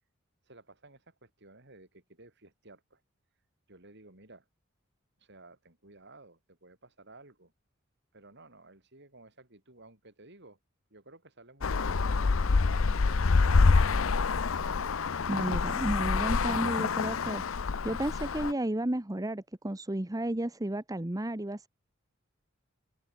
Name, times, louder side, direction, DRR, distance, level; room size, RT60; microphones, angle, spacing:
voice 1, 0.4-3.0 3.7-4.5 5.2-7.5 8.1-10.6 10.9-14.0, right 2 dB, 60° right, 7.4 m, -55 dB
Traffic noise roadway noise, 11.6-18.5, left 4 dB, 80° left, 0.7 m, -26 dB
voice 2, 15.3-17.4 17.8-21.7, right 1 dB, 20° right, 1.0 m, -32 dB
open air
head